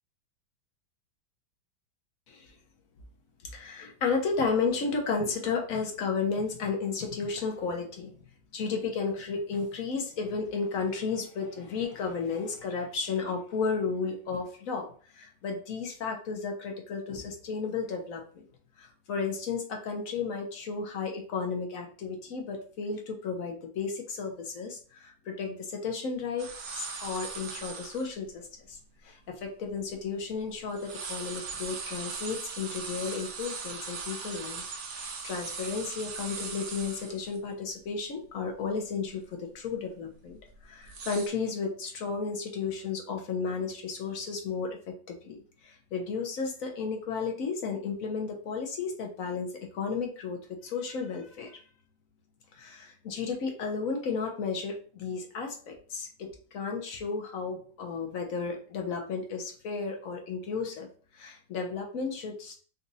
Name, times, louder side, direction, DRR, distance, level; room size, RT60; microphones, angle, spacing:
voice 1, 3.4-8.1 8.5-14.9 15.1-18.5 18.8-28.8 29.0-34.6 34.9-44.8 45.1-49.5 49.7-51.6 52.5-60.9 61.1-62.5, left 5 dB, 55° left, 2 dB, 1.1 m, -33 dB
sound 1, 26.4-28.1 28.7-28.8 29.4-30.4 30.7-37.4 37.8-37.9 38.3-38.6 39.0-39.3 40.0-41.3, right 5 dB, 70° right, 0.7 m, -39 dB
4.1 x 2.5 x 4.0 m, 0.42 s
omnidirectional pair, 2.0 m